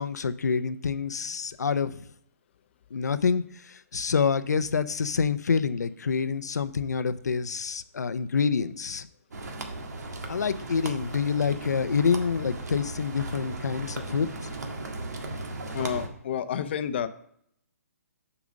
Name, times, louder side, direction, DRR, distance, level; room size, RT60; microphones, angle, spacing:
voice 1, 0.0-2.1 2.9-9.1 10.3-14.3, left 5 dB, 85° left, 13 dB, 0.7 m, -27 dB
sound 1, 9.3-16.1, right 2 dB, 80° right, 1.7 m, -37 dB
voice 2, 15.7-17.1, left 8 dB, 40° left, 11 dB, 0.6 m, -30 dB
7.1 x 5.0 x 6.3 m, 0.70 s
hypercardioid pair, 160°, 9 cm